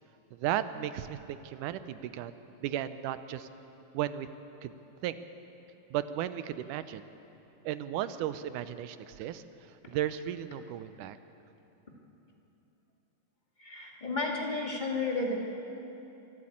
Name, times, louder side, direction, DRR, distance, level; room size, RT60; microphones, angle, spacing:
voice 1, 0.3-3.5 3.9-4.3 4.6-4.7 5.0-5.2 5.9-7.1 7.6-9.4 9.9-11.2, right 11 dB, 80° right, 12 dB, 2.2 m, -35 dB
voice 2, 13.6-15.3, left 3 dB, 20° left, -1 dB, 1.7 m, -32 dB
25.0 x 12.0 x 8.7 m, 3.0 s
omnidirectional pair, 3.6 m